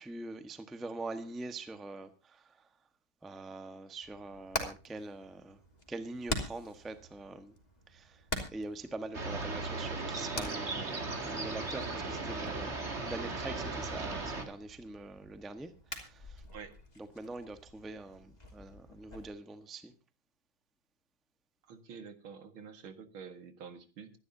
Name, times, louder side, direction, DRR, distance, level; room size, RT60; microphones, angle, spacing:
voice 1, 0.0-2.4 3.2-5.6 5.9-7.5 7.9-8.2 8.5-12.8 13.1-16.4 17.0-19.9, right 2 dB, ahead, 0.8 m, -44 dB
Hammer, 4.0-19.3, left 1 dB, 20° left, 3.1 m, -45 dB
sound 1, 9.1-14.4, right 3 dB, 35° right, 2.4 m, -37 dB
voice 2, 21.7-24.1, right 6 dB, 80° right, 2.5 m, -48 dB
25.5 x 11.5 x 2.7 m
omnidirectional pair, 2.2 m